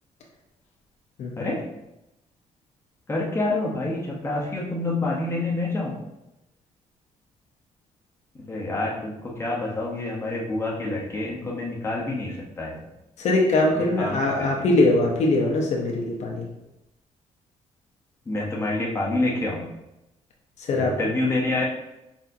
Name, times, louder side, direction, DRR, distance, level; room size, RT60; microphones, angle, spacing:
voice 1, 3.1-5.9 8.3-12.8 13.7-14.7 18.3-19.6 20.7-21.6, left 2 dB, 20° left, -3 dB, 0.8 m, -27 dB
voice 2, 13.2-16.5 20.7-20.9, left 2 dB, 65° left, 0 dB, 0.8 m, -22 dB
4.2 x 3.4 x 2.6 m, 0.92 s
cardioid pair, 105°, 13 cm